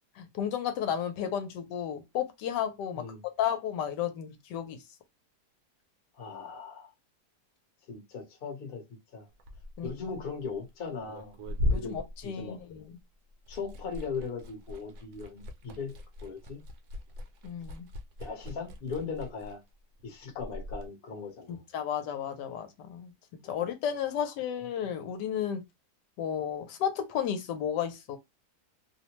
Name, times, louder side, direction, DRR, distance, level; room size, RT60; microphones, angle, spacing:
voice 1, 0.2-3.0 3.4-4.8 9.8-9.9 11.7-12.8 17.4-17.9 21.5-23.1 23.5-25.6 26.2-28.2, left 9 dB, 80° left, 1.2 m, -33 dB
voice 2, 6.1-6.9 7.9-8.8 9.1-9.3 9.8-11.4 11.7-12.6 13.5-16.6 18.2-19.6 20.0-21.6 23.4-23.6, left 5 dB, 40° left, 0.9 m, -39 dB
Liquid, 9.3-13.0 13.3-20.9, left 2 dB, 70° right, 1.1 m, -38 dB
2.9 x 2.1 x 2.8 m
omnidirectional pair, 1.8 m